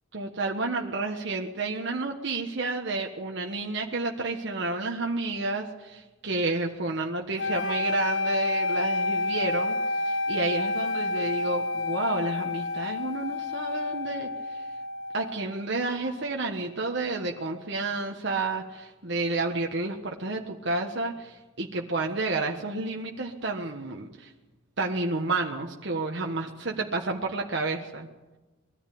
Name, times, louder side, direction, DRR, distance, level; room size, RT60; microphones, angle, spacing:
voice 1, 0.1-9.8 10.1-14.3 15.1-24.3 24.8-28.1, right 3 dB, 60° right, 1 dB, 1.4 m, -30 dB
sound 1, 7.4-15.5, left 2 dB, 70° left, 0.8 m, -29 dB
21.5 x 14.0 x 8.6 m, 1.1 s
head